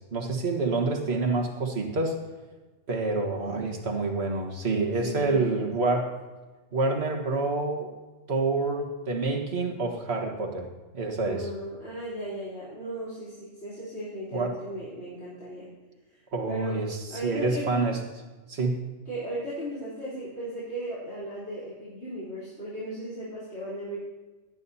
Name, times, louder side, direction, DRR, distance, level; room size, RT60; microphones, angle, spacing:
voice 1, 0.0-2.2 2.9-6.1 6.7-7.9 8.3-10.7 10.9-11.5 14.3-14.5 16.3-18.0 18.5-18.8, right 3 dB, 55° right, 2 dB, 1.7 m, -27 dB
voice 2, 4.7-5.7 11.2-15.7 16.5-16.8 17.1-17.7 19.1-24.0, right 1 dB, 55° left, -9 dB, 3.8 m, -36 dB
18.0 x 11.5 x 2.8 m, 1.2 s
omnidirectional pair, 1.3 m